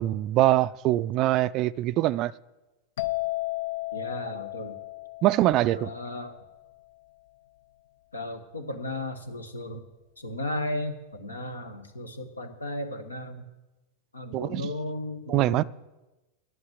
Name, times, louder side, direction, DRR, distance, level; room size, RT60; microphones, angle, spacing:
voice 1, 0.0-2.3 5.2-5.9 14.3-14.6 15.3-15.6, right 15 dB, 40° right, 0.3 m, -23 dB
sound 1, 3.0-6.6, left 20 dB, 60° left, 0.4 m, -34 dB
voice 2, 3.9-4.7 5.7-6.3 8.1-9.8 10.2-13.4 14.1-15.6, left 1 dB, 80° left, 1.2 m, -35 dB
11.0 x 8.5 x 7.8 m
figure-of-eight pair, 90°, 0 cm